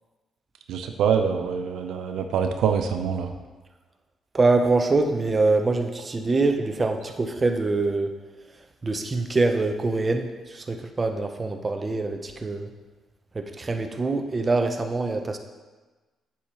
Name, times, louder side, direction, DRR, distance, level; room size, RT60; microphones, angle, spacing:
voice 1, 0.7-3.3, right 7 dB, 80° right, 6 dB, 0.5 m, -25 dB
voice 2, 4.3-8.1 8.8-12.7 13.3-15.4, right 3 dB, 30° right, 5 dB, 0.7 m, -24 dB
8.4 x 7.0 x 3.0 m, 1.3 s
cardioid pair, 90°, 0 cm